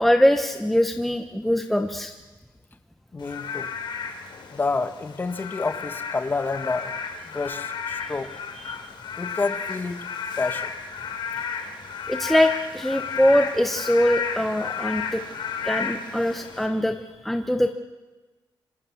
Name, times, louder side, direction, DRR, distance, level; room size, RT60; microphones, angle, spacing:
voice 1, 0.0-2.1 8.6-8.8 12.1-15.2 15.6-17.7, left 1 dB, ahead, 6 dB, 0.9 m, -22 dB
voice 2, 3.1-3.7 4.5-6.9 7.3-8.3 9.2-10.0 10.4-10.7, left 3 dB, 25° left, 10 dB, 1.3 m, -28 dB
Frog / Rain, 3.2-16.7, left 6 dB, 65° left, 4.0 m, -33 dB
26.0 x 25.0 x 7.2 m, 1.2 s
wide cardioid pair, 175°, 9 cm